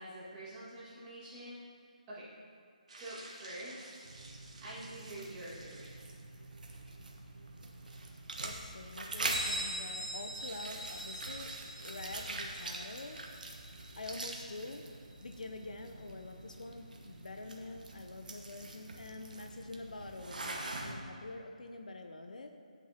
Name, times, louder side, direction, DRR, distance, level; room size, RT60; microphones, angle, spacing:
voice 1, 0.0-1.6 2.1-2.3 3.0-3.9 4.6-5.9, right 1 dB, 10° right, -12 dB, 2.0 m, -46 dB
sound 1, 2.9-6.1, right 2 dB, 55° right, 1.9 m, -53 dB
sound 2, 4.0-20.9, right 2 dB, 75° right, 1.3 m, -44 dB
voice 2, 7.9-11.5 11.8-13.2 14.0-14.8 15.2-22.5, left 2 dB, 65° left, 5 dB, 0.7 m, -46 dB
Bell, 9.3-14.8, right 1 dB, 45° left, 2.3 m, -43 dB
13.5 x 8.2 x 2.9 m, 2.2 s
hypercardioid pair, 180°, 4 cm